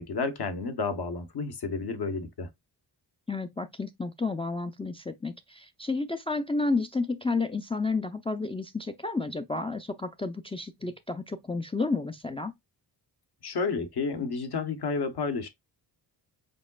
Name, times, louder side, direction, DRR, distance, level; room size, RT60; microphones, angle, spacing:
voice 1, 0.0-2.5 13.4-15.5, left 4 dB, 60° left, 1.1 m, -31 dB
voice 2, 3.3-12.5, left 3 dB, 15° left, 0.4 m, -31 dB
5.2 x 3.8 x 2.3 m
cardioid pair, 90°, 43 cm